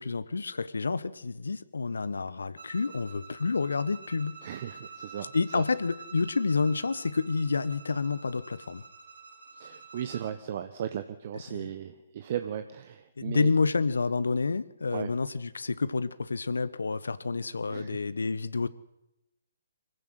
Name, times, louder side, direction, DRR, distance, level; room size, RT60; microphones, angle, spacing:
voice 1, 0.0-4.4 5.2-8.8 11.5-11.7 13.2-18.7, left 4 dB, 70° left, 16 dB, 1.2 m, -29 dB
Bowed string instrument, 2.5-10.3, right 4 dB, 75° right, 3.9 m, -48 dB
voice 2, 4.4-5.6 9.6-13.5 14.9-15.1 17.7-18.0, right 10 dB, 45° right, 10 dB, 1.2 m, -36 dB
24.5 x 15.5 x 8.0 m, 0.90 s
figure-of-eight pair, 135°, 0 cm